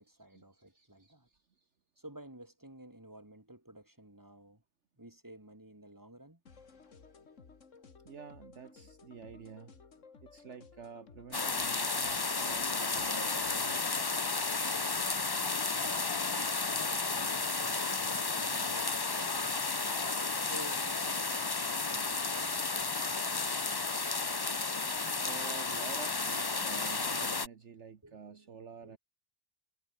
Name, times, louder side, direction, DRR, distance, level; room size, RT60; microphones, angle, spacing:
voice 1, 0.0-1.3 2.0-4.6 5.0-6.4 17.8-19.7 20.4-23.1 28.0-28.5 28.8-29.0, right 1 dB, 15° right, 3.5 m, -52 dB
voice 2, 0.7-1.6 8.0-9.7 10.2-13.8 25.1-29.0, right 6 dB, 60° right, 1.6 m, -49 dB
sound 1, 6.5-13.8, left 5 dB, 65° left, 2.4 m, -57 dB
sound 2, 11.3-27.5, left 4 dB, 25° left, 0.6 m, -32 dB
omnidirectional pair, 1.4 m